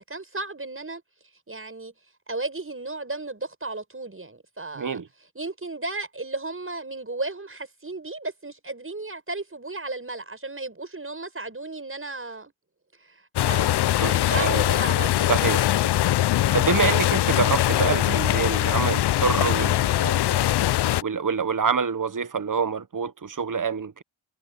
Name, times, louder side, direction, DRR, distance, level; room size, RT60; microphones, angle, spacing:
voice 1, 0.1-1.0 1.5-1.9 2.3-5.0 5.3-12.5 13.0-15.3, right 2 dB, 30° right, 6.5 m, -34 dB
voice 2, 4.7-5.1 14.0-14.7 15.3-15.9 16.5-20.4 21.0-24.0, right 6 dB, 45° right, 1.3 m, -26 dB
sound 1, 13.4-21.0, left 14 dB, 65° left, 0.5 m, -22 dB
cardioid pair, 60°, 44 cm